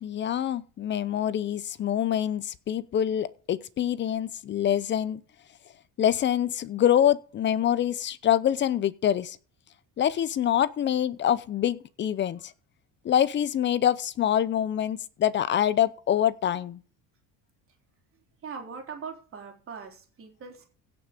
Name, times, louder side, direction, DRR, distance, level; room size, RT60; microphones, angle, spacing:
voice 1, 0.0-5.2 6.0-9.4 10.0-12.5 13.0-16.8, left 10 dB, 30° left, 0.7 m, -25 dB
voice 2, 18.4-20.6, right 5 dB, 35° right, 3.7 m, -41 dB
16.5 x 6.1 x 5.1 m
cardioid pair, 160°, 37 cm